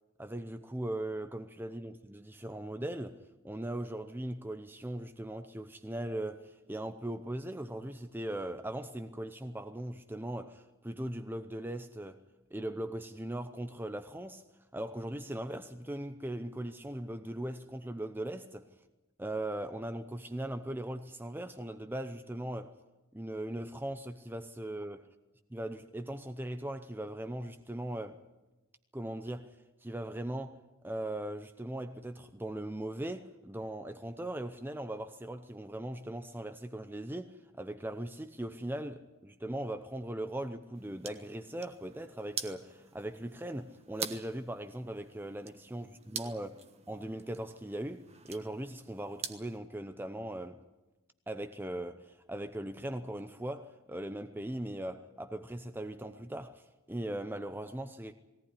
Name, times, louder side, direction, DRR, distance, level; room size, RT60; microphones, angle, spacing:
voice 1, 0.2-3.2 3.4-12.2 12.5-14.4 14.7-18.7 19.2-22.7 23.1-25.1 25.5-28.2 28.9-29.5 29.8-46.6 46.9-50.6 51.3-56.6 56.9-58.1, right 1 dB, 10° right, 0.7 m, -39 dB
sound 1, 40.7-49.6, right 6 dB, 30° right, 1.3 m, -46 dB
19.5 x 18.0 x 9.9 m
head